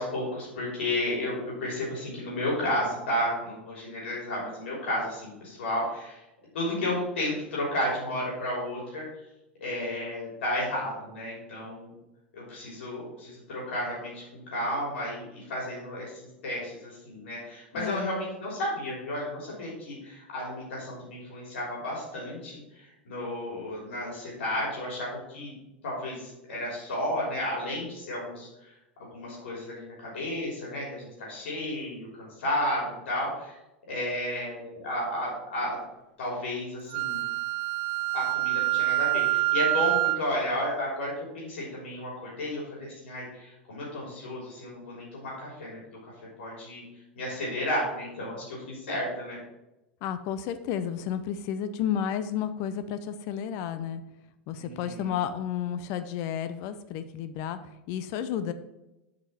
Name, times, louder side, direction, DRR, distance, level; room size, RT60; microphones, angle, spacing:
voice 1, 0.0-6.2 6.5-9.0 9.6-11.9 12.3-25.5 25.8-28.7 29.0-33.6 33.9-35.8 36.2-37.2 38.1-45.8 46.4-46.8 47.1-49.4 54.6-55.2, left 1 dB, 70° left, -4 dB, 3.4 m, -32 dB
voice 2, 17.7-18.1 50.0-54.0 54.5-57.6 57.9-58.5, left 9 dB, 50° left, 11 dB, 0.7 m, -32 dB
Wind instrument woodwind instrument, 36.9-40.3, right 19 dB, 50° right, 0.4 m, -26 dB
7.2 x 5.3 x 5.7 m, 0.95 s
hypercardioid pair, 90°, 6 cm